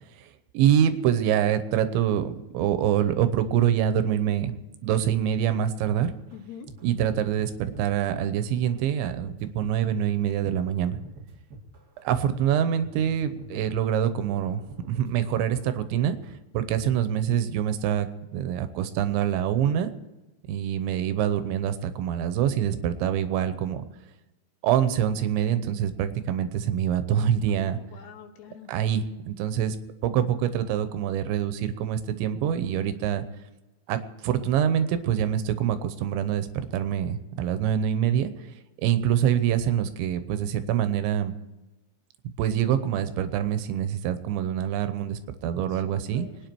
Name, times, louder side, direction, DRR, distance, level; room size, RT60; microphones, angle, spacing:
voice 1, 0.5-4.5 4.8-6.1 6.8-11.0 12.0-16.2 16.5-18.1 18.3-19.9 20.5-23.8 24.6-27.8 28.7-29.8 30.0-33.2 33.9-38.3 38.8-41.3 42.4-46.3, right 9 dB, 85° right, 10 dB, 3.2 m, -25 dB
sound 1, 6.1-6.4 6.7-6.9 7.1-8.3 8.5-16.3 16.6-17.0, right 2 dB, 40° right, 1.4 m, -46 dB
voice 2, 6.3-6.7 27.5-28.7 45.7-46.4, left 8 dB, 70° left, 5 dB, 3.2 m, -46 dB
25.0 x 9.7 x 4.6 m, 1.1 s
omnidirectional pair, 5.2 m